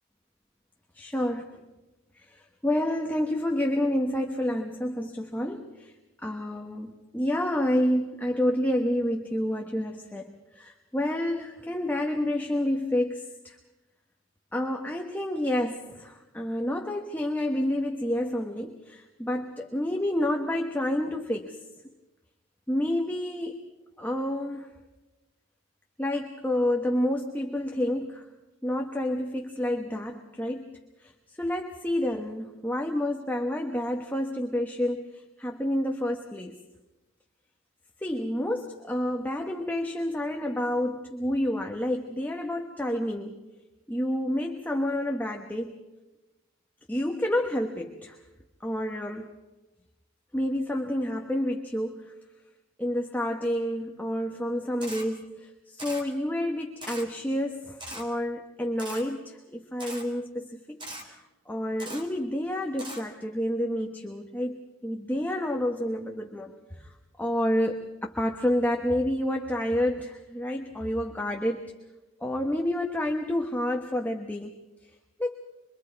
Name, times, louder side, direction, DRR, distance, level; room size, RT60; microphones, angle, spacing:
voice 1, 0.9-1.6 2.1-5.9 6.2-13.6 14.5-21.6 22.7-23.6 24.0-24.7 26.0-28.3 28.6-31.1 31.4-36.6 38.0-43.4 43.9-45.7 46.9-48.2 48.6-49.3 50.3-52.1 52.8-71.7 72.2-74.5 75.2-75.4, left 1 dB, 10° left, 2 dB, 1.1 m, -29 dB
Camera, 54.8-55.0 55.8-56.0 56.8-57.0 57.8-58.0 58.8-59.0 59.8-60.0 60.8-61.0 61.8-62.0 62.8-63.0, right 1 dB, 25° right, 3.4 m, -39 dB
26.0 x 23.5 x 4.7 m, 1.1 s
head